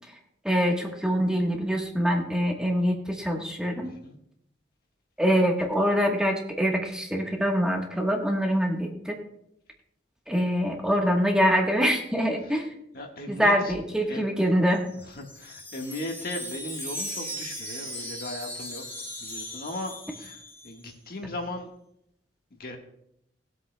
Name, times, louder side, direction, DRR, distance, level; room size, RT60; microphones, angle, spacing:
voice 1, 0.4-3.9 5.2-9.1 10.3-12.7 13.3-14.8, equal, 5° right, 1 dB, 1.2 m, -24 dB
voice 2, 3.8-4.2 12.9-13.7 14.1-14.2 14.9-18.8 19.2-21.7 22.6-22.8, left 1 dB, 55° left, 2 dB, 1.5 m, -37 dB
Wind chime, 14.7-20.9, equal, 15° left, 2.0 m, -38 dB
20.0 x 8.1 x 2.2 m, 0.75 s
head